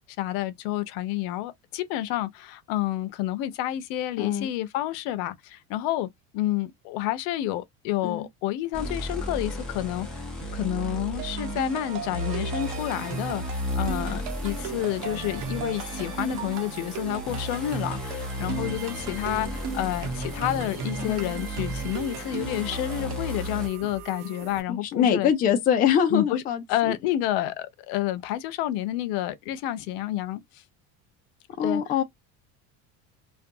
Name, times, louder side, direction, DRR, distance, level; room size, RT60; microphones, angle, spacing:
voice 1, 0.2-6.1 6.3-10.2 10.5-25.3 26.1-26.4 26.7-30.4 31.6-31.8, left 14 dB, 75° left, 0.6 m, -29 dB
voice 2, 4.2-4.5 8.0-8.3 21.1-21.4 24.7-26.9 31.6-32.0, left 8 dB, 25° left, 0.4 m, -24 dB
sound 1, 8.7-23.7, equal, ahead, 0.7 m, -34 dB
sound 2, 11.2-23.5, right 6 dB, 75° right, 1.0 m, -37 dB
sound 3, 12.6-24.6, right 4 dB, 45° right, 0.7 m, -44 dB
2.5 x 2.3 x 2.5 m
cardioid pair, 160°, 37 cm